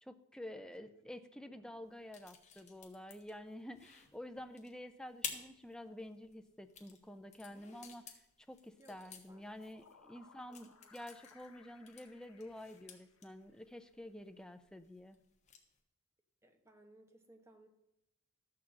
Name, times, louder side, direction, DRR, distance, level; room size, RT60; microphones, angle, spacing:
voice 1, 0.0-8.1 8.5-15.2, left 1 dB, 5° left, 9 dB, 0.5 m, -50 dB
voice 2, 1.5-2.0 8.8-9.0 9.3-9.5 10.0-10.1 10.5-10.9 16.4-17.7, right 1 dB, 10° right, 3 dB, 1.1 m, -63 dB
sound 1, 1.8-15.8, left 7 dB, 30° left, 1.2 m, -53 dB
sound 2, 9.3-13.7, left 5 dB, 90° left, 1.1 m, -64 dB
13.0 x 4.8 x 7.4 m, 0.87 s
head